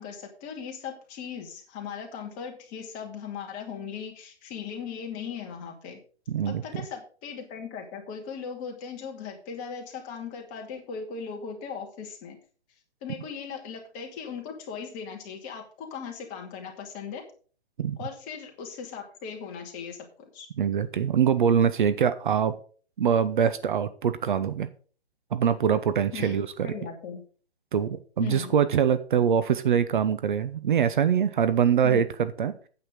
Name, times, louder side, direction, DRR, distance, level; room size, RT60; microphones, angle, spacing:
voice 1, 0.0-6.0 6.5-12.4 13.0-17.2 18.0-20.1 20.3-20.5 26.1-27.2 28.2-28.6 31.8-32.1, left 6 dB, 25° left, 2 dB, 2.4 m, -38 dB
voice 2, 6.3-6.8 17.8-18.0 20.6-22.5 23.0-24.7 25.3-26.7 27.7-32.7, right 8 dB, 50° right, 13 dB, 0.9 m, -24 dB
9.4 x 8.0 x 5.2 m, 0.41 s
figure-of-eight pair, 140°, 33 cm